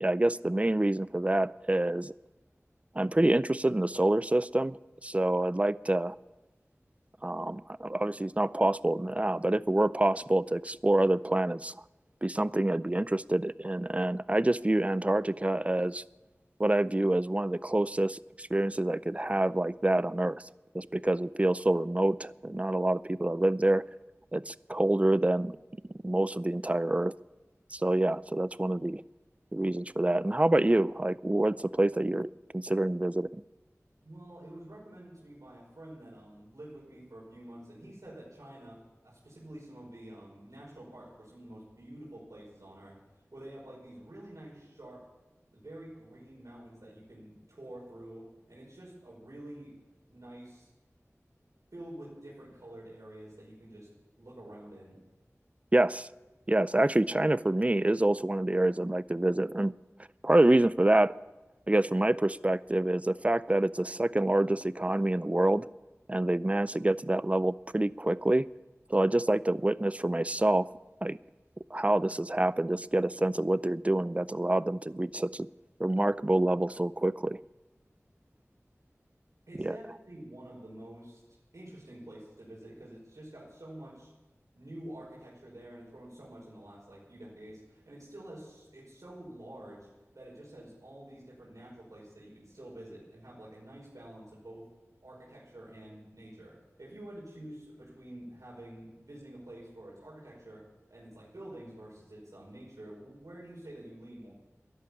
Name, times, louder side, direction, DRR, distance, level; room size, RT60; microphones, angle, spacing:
voice 1, 0.0-2.1 3.0-6.2 7.2-11.7 12.2-16.0 16.6-20.4 20.7-23.8 24.3-25.6 26.0-27.1 27.7-29.0 29.5-33.4 55.7-56.1 56.5-59.7 60.2-61.1 61.7-65.7 66.1-68.5 68.9-70.7 71.0-71.2 71.7-75.5 75.8-77.4 79.6-79.7, right 1 dB, 25° right, 18 dB, 0.4 m, -27 dB
voice 2, 34.0-43.0 43.3-45.0 45.5-49.7 50.1-50.7 51.7-53.9 54.2-55.0 79.5-81.2 81.5-84.1 84.6-89.9 90.1-94.7 95.0-100.6 100.9-104.3, right 1 dB, 80° right, -6 dB, 5.5 m, -48 dB
13.5 x 11.0 x 8.6 m, 1.1 s
wide cardioid pair, 45°, 5 cm